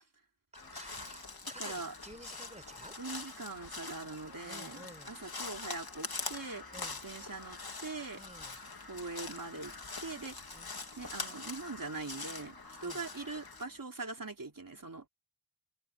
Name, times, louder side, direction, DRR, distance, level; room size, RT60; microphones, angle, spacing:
Crow, 0.5-13.6, left 3 dB, 50° left, 2.7 m, -44 dB
voice 1, 0.5-2.9 4.4-5.1 6.7-7.0 8.1-8.6 10.5-10.7 12.8-13.0, right 1 dB, 15° right, 4.1 m, -52 dB
sound 1, 0.6-13.8, left 1 dB, 20° left, 3.8 m, -61 dB
voice 2, 1.6-1.9 3.0-6.6 7.0-8.2 8.9-9.7 10.0-10.5 11.0-15.1, right 3 dB, 45° right, 3.2 m, -42 dB
wide cardioid pair, 70°, 46 cm